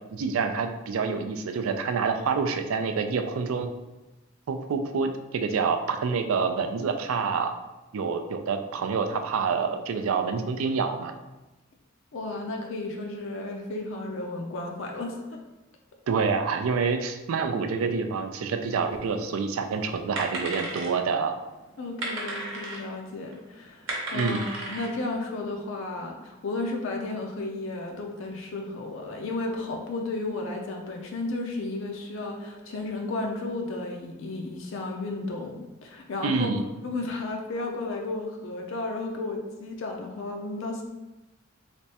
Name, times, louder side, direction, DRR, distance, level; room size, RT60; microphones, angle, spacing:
voice 1, 0.1-3.7 4.5-7.5 7.9-11.1 16.1-21.4 24.1-24.4 36.2-36.6, right 5 dB, 85° right, 7 dB, 0.4 m, -27 dB
voice 2, 12.1-15.2 21.8-36.5 36.8-40.8, left 2 dB, 65° left, 1 dB, 0.4 m, -33 dB
sound 1, 18.6-18.7 18.9-19.5 19.8-21.2 21.8-22.9 23.3-23.4 23.7-25.2, right 2 dB, 65° right, 0.9 m, -34 dB
3.4 x 3.1 x 2.8 m, 1.0 s
head